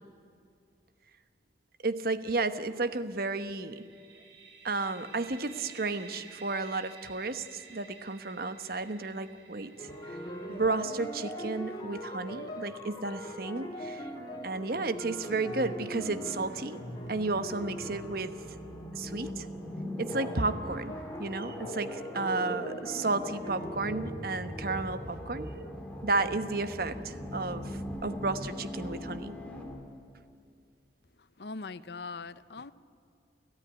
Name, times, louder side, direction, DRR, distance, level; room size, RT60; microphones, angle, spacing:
voice 1, 1.8-3.8 4.6-10.2 10.5-14.1 14.4-16.8 17.1-18.3 19.0-19.5 20.0-25.5 26.0-29.4, right 3 dB, 55° right, 11 dB, 1.1 m, -33 dB
sound 1, 3.7-13.4, right 5 dB, 85° right, 4.1 m, -53 dB
sound 2, 9.8-19.2 20.1-23.8, equal, 25° left, 3.4 m, -41 dB
sound 3, 13.4-29.8, equal, 5° left, 2.5 m, -41 dB
voice 2, 31.4-32.7, left 4 dB, 65° left, 15 dB, 0.7 m, -41 dB
29.5 x 14.5 x 9.9 m, 2.4 s
head